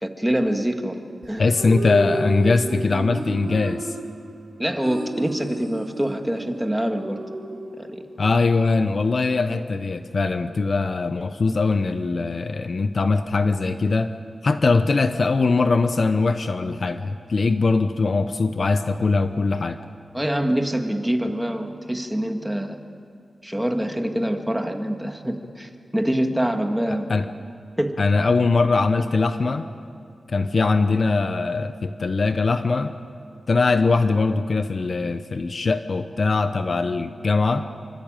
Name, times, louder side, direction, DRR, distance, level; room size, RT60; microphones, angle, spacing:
voice 1, 0.0-1.5 4.6-7.2 7.8-8.0 20.1-22.8 23.4-27.1 27.8-28.0, right 1 dB, 5° right, 5 dB, 1.8 m, -25 dB
sound 1, 1.2-8.3, right 2 dB, 55° right, 3.0 m, -32 dB
voice 2, 1.4-3.9 8.2-14.1 14.4-19.8 27.1-27.3 28.0-29.7 30.3-32.9 33.5-37.7, left 3 dB, 45° left, 9 dB, 0.9 m, -21 dB
26.0 x 24.5 x 9.1 m, 2.3 s
wide cardioid pair, 150°, 0 cm